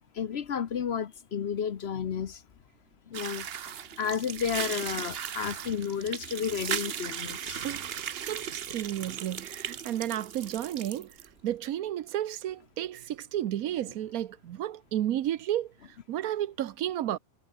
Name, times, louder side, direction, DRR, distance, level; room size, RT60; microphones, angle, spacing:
voice 1, 0.0-2.4 3.1-3.5 4.0-7.6, left 7 dB, 50° left, 1.0 m, -32 dB
sound 1, 3.1-11.3, right 8 dB, 50° right, 0.9 m, -37 dB
voice 2, 7.6-11.1 11.4-15.7 16.1-17.2, right 12 dB, 80° right, 1.2 m, -32 dB
omnidirectional pair, 1.5 m